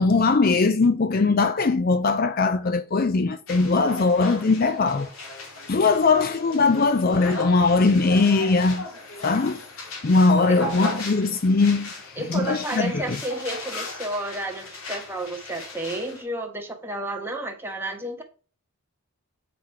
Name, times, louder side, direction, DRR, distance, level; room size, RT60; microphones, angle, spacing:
voice 1, 0.0-5.1 5.7-8.8 9.2-9.6 10.0-13.0, left 3 dB, 40° left, 0.4 m, -20 dB
sound 1, 3.5-16.2, left 2 dB, 75° left, 2.2 m, -37 dB
voice 2, 12.1-18.2, right 1 dB, 10° right, 1.4 m, -31 dB
8.3 x 5.0 x 4.7 m
head